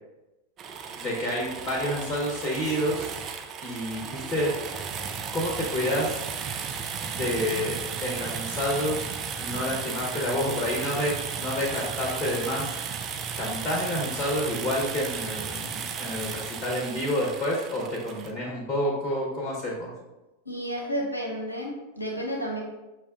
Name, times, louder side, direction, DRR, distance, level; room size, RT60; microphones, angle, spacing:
sound 1, 0.6-18.3, right 6 dB, 30° right, 0.4 m, -35 dB
voice 1, 1.0-3.1 3.6-4.5 5.3-6.2 7.1-9.1 9.4-12.7 13.4-19.9, left 1 dB, 25° left, -2 dB, 1.0 m, -29 dB
voice 2, 20.5-22.6, equal, 80° left, 0 dB, 0.9 m, -31 dB
5.8 x 2.3 x 3.7 m, 1.0 s
figure-of-eight pair, 90°, 0 cm